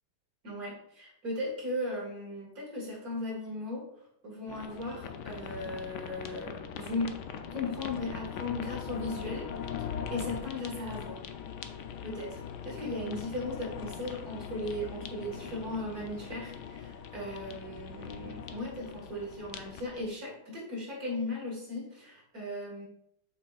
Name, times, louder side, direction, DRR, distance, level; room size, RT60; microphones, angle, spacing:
voice 1, 0.4-3.9 4.2-7.1 7.5-9.5 9.8-11.2 12.0-12.3 12.6-22.9, left 1 dB, 45° right, -3 dB, 2.1 m, -37 dB
sound 1, 4.5-20.1, left 7 dB, 80° left, 0.9 m, -41 dB
7.3 x 5.4 x 2.4 m, 0.76 s
omnidirectional pair, 2.4 m